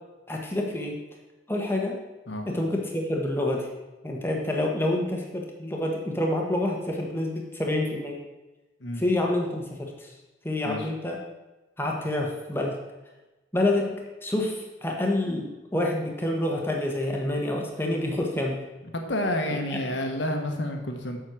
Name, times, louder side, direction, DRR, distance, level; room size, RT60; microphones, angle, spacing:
voice 1, 0.3-1.0 1.5-2.0 2.5-3.7 4.0-8.2 9.0-10.1 10.4-11.2 11.8-12.8 13.5-13.9 14.2-18.6 19.7-19.8, left 1 dB, 10° left, 0 dB, 1.3 m, -27 dB
voice 2, 18.8-21.2, left 1 dB, 70° left, 4 dB, 1.4 m, -30 dB
7.7 x 6.4 x 6.1 m, 1.1 s
head